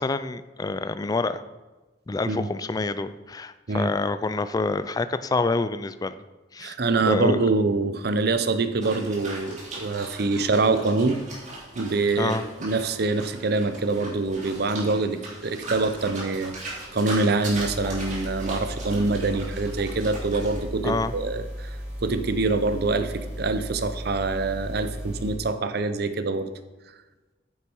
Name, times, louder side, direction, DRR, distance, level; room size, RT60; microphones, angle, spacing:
voice 1, 0.0-1.4 2.1-6.2 6.5-6.7 7.0-7.4 12.2-12.5 20.8-21.1, left 3 dB, 20° left, 12 dB, 0.3 m, -27 dB
voice 2, 6.6-11.2 11.8-21.7 22.0-26.5, right 3 dB, 55° right, 10 dB, 0.7 m, -25 dB
sound 1, 8.8-20.6, right 2 dB, 40° right, 3.3 m, -39 dB
sound 2, 17.4-25.3, equal, 10° right, 2.3 m, -36 dB
9.6 x 6.8 x 4.6 m, 1.2 s
head